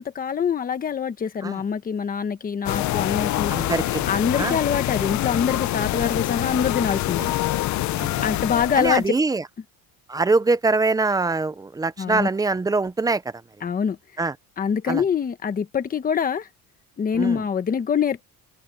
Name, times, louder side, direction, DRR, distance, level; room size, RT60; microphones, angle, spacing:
voice 1, 0.0-3.5 4.1-7.3 8.2-9.1 12.0-12.3 13.6-14.0 14.6-16.5 17.0-18.2, left 7 dB, 25° left, 1.2 m, -24 dB
sound 1, 2.7-9.1, left 15 dB, 50° left, 0.7 m, -25 dB
voice 2, 3.5-4.1 4.4-4.6 7.2-7.3 8.0-8.1 8.8-9.4 10.1-13.2 14.2-14.3 14.9-15.0 17.2-17.4, right 3 dB, 10° right, 0.5 m, -23 dB
open air
cardioid pair, 175°, 37 cm